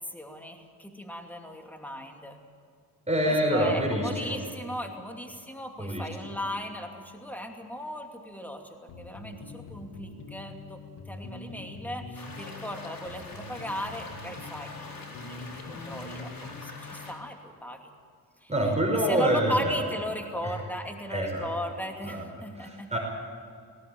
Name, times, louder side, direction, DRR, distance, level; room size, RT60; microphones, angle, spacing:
voice 1, 0.0-2.4 3.3-10.8 11.1-16.3 16.6-17.9 18.4-18.5 18.9-23.0, equal, 5° left, 3 dB, 2.7 m, -37 dB
voice 2, 3.1-4.4 5.8-6.1 18.5-19.8 20.4-20.5 21.1-21.5 22.1-22.2 22.6-23.0, right 1 dB, 15° right, -1 dB, 5.7 m, -26 dB
sound 1, 8.9-17.3, left 3 dB, 85° left, 2.0 m, -44 dB
sound 2, 12.1-17.1, left 2 dB, 60° left, 4.1 m, -44 dB
19.5 x 17.0 x 9.0 m, 2.3 s
cardioid pair, 75°, 39 cm